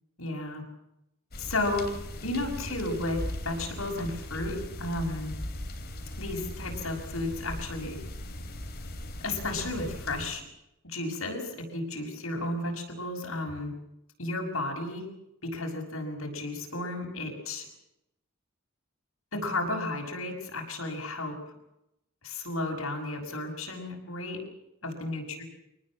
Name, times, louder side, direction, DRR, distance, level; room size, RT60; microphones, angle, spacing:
voice 1, 0.2-0.6 1.4-1.9 2.2-5.3 6.2-8.0 9.2-10.4 10.8-13.7 14.2-15.1 15.4-17.7 19.3-21.4 22.2-24.4 24.8-25.4, left 2 dB, 75° left, 2 dB, 6.4 m, -33 dB
sound 1, 1.3-10.3, left 1 dB, 50° left, 3.5 m, -39 dB
25.0 x 19.5 x 7.6 m, 0.84 s
head